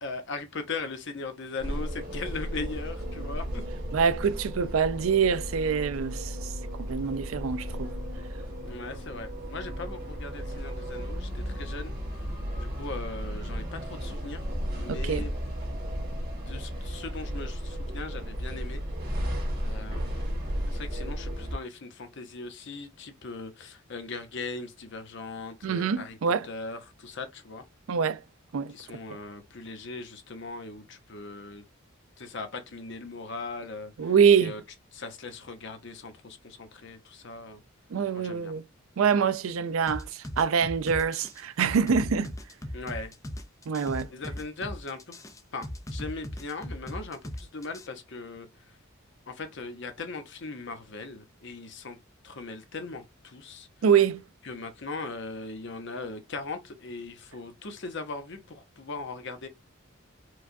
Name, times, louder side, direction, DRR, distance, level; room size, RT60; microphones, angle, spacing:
voice 1, 0.0-3.6 8.7-11.9 12.6-15.4 16.3-18.8 19.6-20.4 20.7-27.6 28.7-31.6 32.2-34.1 34.4-34.6 34.9-37.6 38.1-38.5 42.7-43.1 44.1-45.2 45.5-48.5 49.3-52.0 52.2-53.7 54.4-59.5, left 3 dB, 60° left, 0.8 m, -39 dB
sound 1, 1.6-21.5, equal, 45° right, 1.9 m, -34 dB
voice 2, 3.9-6.5 6.8-7.9 14.9-15.2 25.6-26.5 27.9-28.2 28.5-28.7 34.0-34.5 37.9-38.6 39.0-42.3 43.7-44.1 53.8-54.2, right 6 dB, 85° right, 0.4 m, -25 dB
sound 2, 39.9-47.9, left 1 dB, 15° left, 0.4 m, -38 dB
4.7 x 2.3 x 2.6 m
head